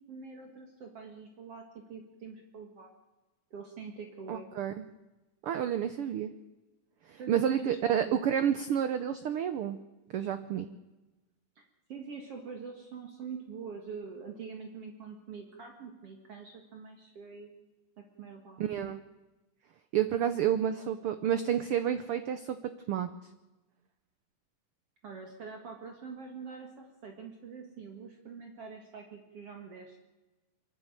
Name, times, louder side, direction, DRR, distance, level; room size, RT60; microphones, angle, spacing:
voice 1, 0.1-2.9 3.5-4.5 7.2-8.2 11.6-11.7 11.9-17.7 18.0-18.6 25.0-30.0, right 5 dB, 50° right, 3 dB, 2.7 m, -45 dB
voice 2, 4.3-4.7 5.4-6.3 7.1-9.8 10.1-10.7 18.6-19.0 19.9-23.1, right 9 dB, 80° right, 11 dB, 1.3 m, -30 dB
23.5 x 12.0 x 9.0 m, 1.1 s
omnidirectional pair, 3.5 m